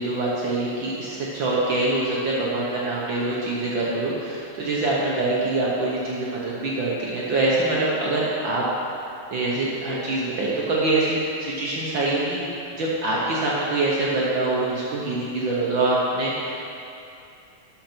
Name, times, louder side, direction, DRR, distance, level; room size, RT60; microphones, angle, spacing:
voice 1, 0.0-8.6 9.3-12.4 12.8-16.6, right 2 dB, 65° right, -5 dB, 1.2 m, -24 dB
11.5 x 6.5 x 4.5 m, 2.7 s
omnidirectional pair, 3.5 m